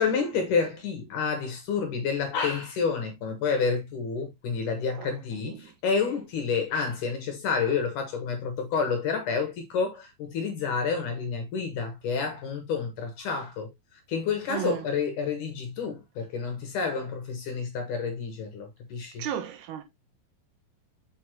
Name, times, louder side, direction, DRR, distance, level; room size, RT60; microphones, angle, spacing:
voice 1, 0.0-19.3, left 5 dB, 70° left, 2.2 m, -29 dB
voice 2, 14.5-14.8 19.2-19.8, right 10 dB, 90° right, 3.2 m, -33 dB
6.7 x 5.1 x 2.9 m
omnidirectional pair, 4.4 m